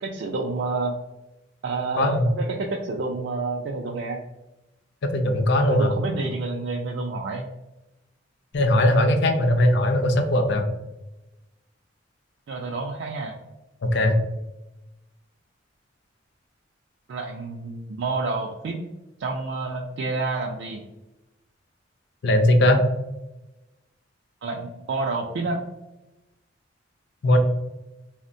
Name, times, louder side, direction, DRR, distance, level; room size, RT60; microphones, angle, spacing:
voice 1, 0.0-0.9 1.6-4.2 5.6-7.5 12.5-13.4 17.1-18.8 19.2-20.8 24.4-25.6 27.3-27.4, right 3 dB, 65° right, 0 dB, 0.3 m, -29 dB
voice 2, 2.0-2.3 5.0-5.9 8.5-10.7 13.8-14.2 22.2-22.8 27.2-27.4, left 1 dB, 60° left, 6 dB, 0.4 m, -19 dB
3.5 x 2.1 x 2.5 m, 0.99 s
head